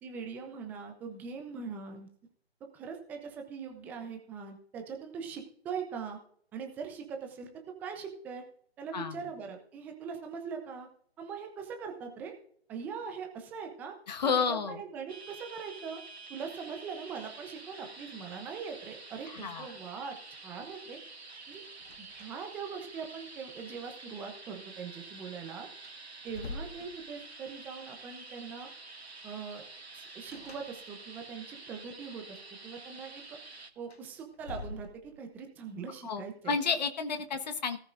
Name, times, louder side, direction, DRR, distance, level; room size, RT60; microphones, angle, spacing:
voice 1, 0.0-2.1 2.7-6.2 6.5-7.5 7.8-8.4 8.8-10.9 11.2-12.3 12.7-14.0 14.2-16.0 16.3-21.0 21.5-21.6 22.0-25.7 26.2-28.7 29.2-29.6 29.9-32.4 32.6-33.4 33.8-36.6, right 6 dB, 5° right, 4 dB, 0.7 m, -41 dB
voice 2, 14.1-14.8 19.3-19.7 36.0-37.8, left 5 dB, 40° left, 8 dB, 1.4 m, -31 dB
sound 1, 15.1-33.7, right 3 dB, 90° right, 2.1 m, -49 dB
sound 2, 21.8-22.6 22.9-23.0 25.2-25.3 25.8-27.5 30.3-31.2 33.7-35.4, left 3 dB, 75° left, 2.0 m, -46 dB
17.0 x 14.0 x 2.6 m, 0.64 s
figure-of-eight pair, 150°, 31 cm